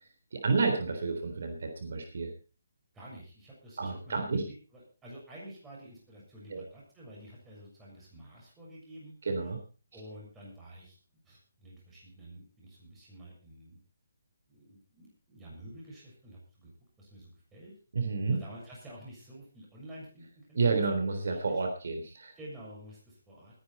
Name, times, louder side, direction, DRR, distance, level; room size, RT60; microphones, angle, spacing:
voice 1, 0.3-2.3 3.8-4.4 6.5-6.6 9.3-9.6 17.9-18.4 20.5-22.3, right 4 dB, 60° right, 5 dB, 3.6 m, -30 dB
voice 2, 2.9-9.1 9.4-9.5 9.9-11.0 11.2-13.8 14.5-17.7 18.3-20.8 21.3-21.6 22.4-23.6, right 1 dB, 10° right, -5 dB, 7.0 m, -50 dB
21.0 x 10.5 x 4.3 m, 0.35 s
hypercardioid pair, 165°, 0 cm